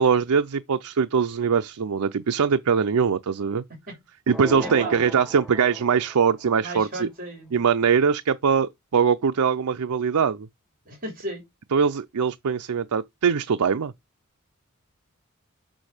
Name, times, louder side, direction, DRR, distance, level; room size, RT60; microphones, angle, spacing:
voice 1, 0.0-3.6 4.3-7.1 7.5-10.5 11.7-13.9, right 6 dB, 85° right, 0.5 m, -22 dB
sound 1, 4.3-6.3, equal, ahead, 0.6 m, -36 dB
voice 2, 4.6-5.0 6.6-7.5 10.8-11.4, right 2 dB, 40° right, 3.3 m, -35 dB
6.2 x 6.2 x 4.9 m
head